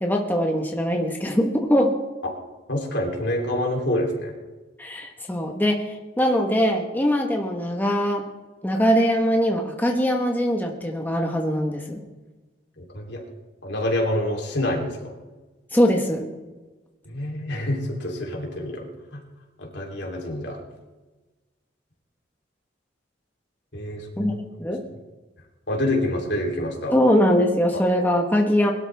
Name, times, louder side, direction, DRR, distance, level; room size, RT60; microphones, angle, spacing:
voice 1, 0.0-2.0 4.8-8.2 8.6-12.0 15.7-16.3 24.2-24.3 24.6-24.8 26.9-28.7, equal, 10° left, 1 dB, 1.2 m, -22 dB
voice 2, 2.7-4.3 12.8-13.2 13.6-15.2 17.0-19.2 19.6-20.6 23.7-24.4 24.6-24.7 25.7-27.0, left 1 dB, 65° left, 0 dB, 3.3 m, -27 dB
22.0 x 12.5 x 3.5 m, 1.2 s
head